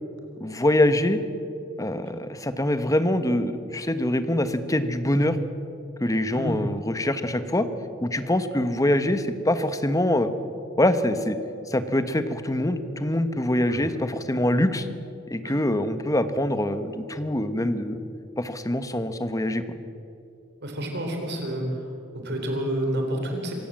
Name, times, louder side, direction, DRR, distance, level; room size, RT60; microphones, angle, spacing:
voice 1, 0.4-1.2 1.8-5.4 6.0-7.7 8.0-10.3 10.8-11.4 11.7-14.9 15.3-18.0 18.4-19.6, left 1 dB, 15° left, 11 dB, 1.1 m, -24 dB
voice 2, 20.6-21.9 22.1-23.5, right 1 dB, 55° right, 3 dB, 3.8 m, -29 dB
26.5 x 16.5 x 7.6 m, 2.7 s
head